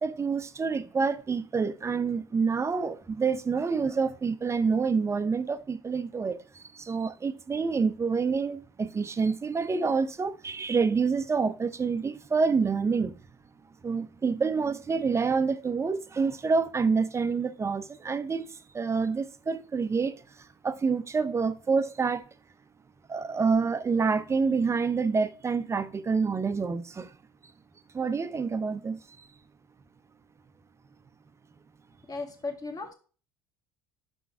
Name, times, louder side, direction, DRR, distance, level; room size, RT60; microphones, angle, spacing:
voice 1, 0.0-13.2 13.8-22.2 23.1-27.1 27.9-29.3, right 5 dB, 20° right, 0.6 m, -27 dB
voice 2, 32.1-32.9, left 3 dB, 30° left, 1.6 m, -36 dB
5.4 x 5.2 x 3.4 m
hypercardioid pair, 70°, 13 cm